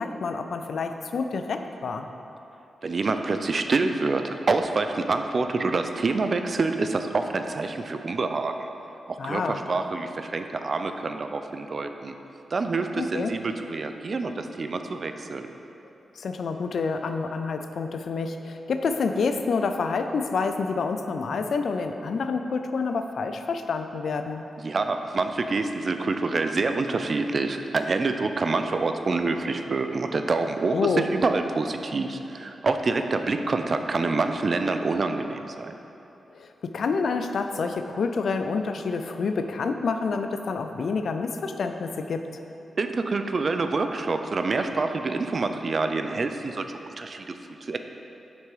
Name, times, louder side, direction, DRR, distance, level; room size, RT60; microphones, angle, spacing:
voice 1, 0.0-2.1 9.2-9.6 13.0-13.3 16.2-24.4 30.7-31.1 36.3-42.2, left 4 dB, 70° left, 7 dB, 0.5 m, -28 dB
voice 2, 2.8-8.7 9.1-12.1 12.5-15.5 24.6-35.7 42.8-46.7 47.0-47.8, right 3 dB, 55° right, 7 dB, 0.6 m, -27 dB
7.4 x 6.1 x 4.9 m, 2.9 s
supercardioid pair, 40°, 0 cm